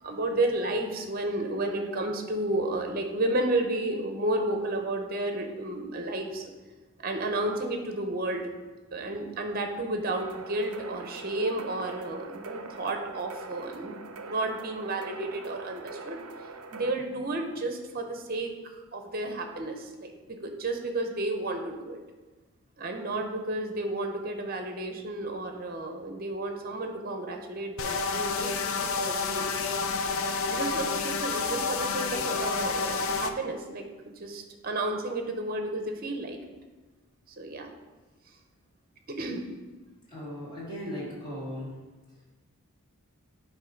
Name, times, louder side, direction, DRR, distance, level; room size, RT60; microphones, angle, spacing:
voice 1, 0.0-6.5 7.0-8.5 8.9-16.2 16.7-18.5 18.9-20.2 20.4-22.0 22.8-29.5 30.5-36.4 37.4-37.7 39.1-39.4, right 2 dB, 40° right, 4 dB, 0.8 m, -32 dB
sound 1, 10.1-16.9, right 3 dB, 75° right, 0.5 m, -43 dB
sound 2, 27.8-33.3, left 4 dB, 70° left, 0.5 m, -29 dB
voice 2, 40.1-41.7, equal, 20° left, -8 dB, 2.3 m, -37 dB
8.9 x 3.1 x 5.2 m, 1.3 s
head